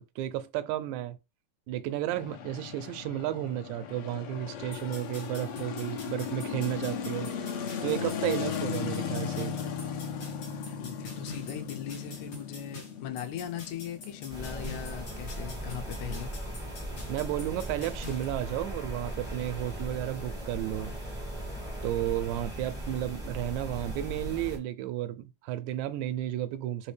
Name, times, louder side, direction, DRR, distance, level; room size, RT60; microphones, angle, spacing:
voice 1, 0.2-1.2 1.7-7.3 7.8-9.6 17.1-20.9 21.8-26.9, right 13 dB, 85° right, 1.9 m, -33 dB
sound 1, 2.1-16.3, left 7 dB, 70° left, 1.7 m, -37 dB
sound 2, 4.7-18.2, left 3 dB, 55° left, 1.1 m, -46 dB
voice 2, 10.8-16.3, left 9 dB, 90° left, 2.1 m, -39 dB
sound 3, 14.3-24.6, right 1 dB, 5° right, 0.6 m, -38 dB
4.8 x 2.8 x 3.2 m
omnidirectional pair, 3.3 m